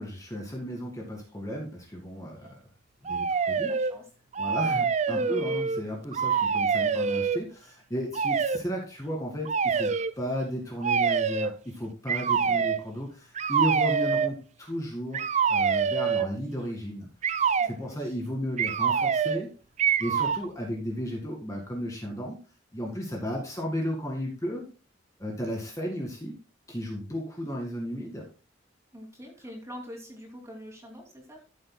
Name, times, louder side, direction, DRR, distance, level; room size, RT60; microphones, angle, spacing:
voice 1, 0.0-2.5 3.0-3.7 4.4-17.1 17.6-19.5 20.0-22.4 22.7-24.7 25.2-26.4 26.7-28.3, equal, 15° left, 0 dB, 1.9 m, -34 dB
sound 1, 3.1-3.9 4.3-5.8 6.1-7.4 8.1-8.6 9.5-10.1 10.8-11.6 12.1-12.8 13.4-14.3 15.1-16.3 17.2-17.7 18.6-19.5 19.8-20.5, right 6 dB, 35° right, 0.4 m, -25 dB
voice 2, 3.7-4.1 4.4-4.8 5.1-5.6 6.3-6.7 12.3-12.6 17.6-18.1 28.9-31.4, equal, 15° right, 1 dB, 2.6 m, -45 dB
14.0 x 7.9 x 2.2 m, 0.33 s
head